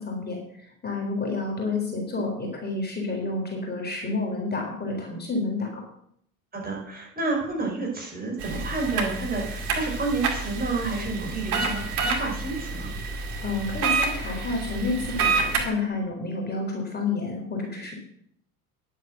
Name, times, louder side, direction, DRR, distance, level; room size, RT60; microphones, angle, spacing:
voice 1, 0.0-5.8 13.4-17.9, left 3 dB, 20° left, 0 dB, 4.0 m, -30 dB
voice 2, 6.5-12.9, right 3 dB, 20° right, -2 dB, 5.4 m, -30 dB
sound 1, 8.4-15.7, right 4 dB, 85° right, 2.3 m, -28 dB
10.5 x 8.4 x 6.6 m, 0.69 s
hypercardioid pair, 80°, 44 cm